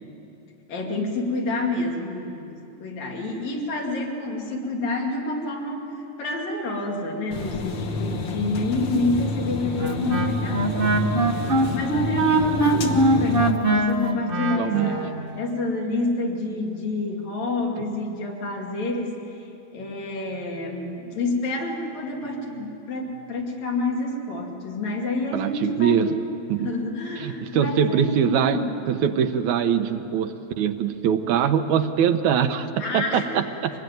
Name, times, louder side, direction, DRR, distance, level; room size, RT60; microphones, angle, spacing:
voice 1, 0.7-5.9 6.2-11.0 11.3-11.5 11.7-19.1 19.7-26.2 26.6-28.7 32.8-33.4, left 2 dB, 70° left, 0 dB, 4.0 m, -28 dB
sound 1, 7.3-13.5, left 3 dB, 50° left, 1.7 m, -29 dB
Wind instrument woodwind instrument, 9.8-15.1, right 2 dB, 30° right, 0.9 m, -22 dB
voice 2, 14.6-15.0 25.3-26.1 26.5-26.7 27.2-28.6 28.9-32.7 32.9-33.7, right 8 dB, 80° right, 8 dB, 2.3 m, -23 dB
25.0 x 19.0 x 9.4 m, 2.9 s
omnidirectional pair, 3.3 m